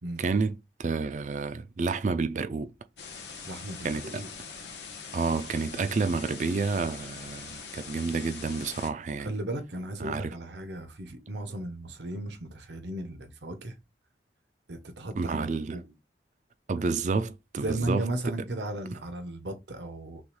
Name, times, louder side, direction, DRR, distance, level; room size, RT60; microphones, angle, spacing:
voice 1, 0.2-2.7 3.8-4.2 5.1-9.3 10.0-10.3 15.2-15.8 16.7-18.0, right 4 dB, 40° right, 0.4 m, -29 dB
sound 1, 3.0-8.9, left 5 dB, 75° left, 1.2 m, -43 dB
voice 2, 3.4-4.3 9.2-13.7 14.7-15.9 16.8-16.9 17.6-20.2, right 1 dB, 80° right, 0.8 m, -36 dB
6.1 x 2.4 x 3.1 m
head